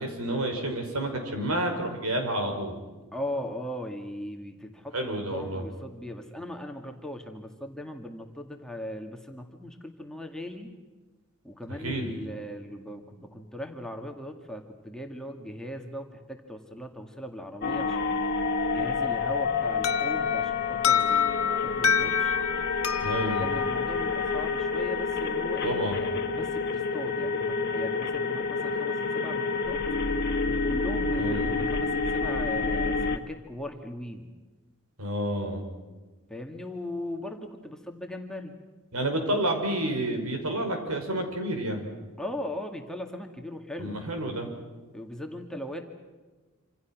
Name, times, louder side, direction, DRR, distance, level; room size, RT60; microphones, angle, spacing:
voice 1, 0.0-2.8 4.9-5.6 11.7-12.2 23.0-23.5 25.6-26.0 31.2-31.5 35.0-35.6 38.9-41.9 43.8-44.5, right 1 dB, 75° right, 4 dB, 5.6 m, -30 dB
voice 2, 3.1-10.7 11.4-18.2 18.7-22.4 23.4-25.8 26.3-29.8 30.4-34.3 36.3-38.5 42.2-44.0 44.9-45.8, left 1 dB, 5° left, 3 dB, 2.1 m, -39 dB
sound 1, 17.6-33.2, left 4 dB, 50° left, 1.7 m, -28 dB
Organ, 19.3-30.1, right 2 dB, 25° right, 6.4 m, -46 dB
Alarm, 19.8-24.6, left 7 dB, 75° left, 1.7 m, -28 dB
27.5 x 27.0 x 6.1 m, 1.2 s
head